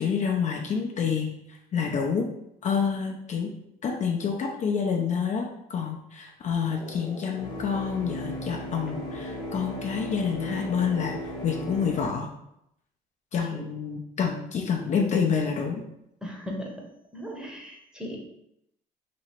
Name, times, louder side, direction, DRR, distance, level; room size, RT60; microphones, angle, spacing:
voice 1, 0.0-2.3 2.6-3.5 3.8-11.1 11.4-12.3 13.3-15.8, left 6 dB, 45° left, 0 dB, 0.6 m, -28 dB
sound 1, 6.7-12.0, left 1 dB, 25° left, 1.0 m, -36 dB
voice 2, 16.2-16.9 17.1-18.2, equal, 5° right, -1 dB, 0.9 m, -37 dB
3.0 x 2.8 x 4.3 m, 0.79 s
cardioid pair, 110°, 17 cm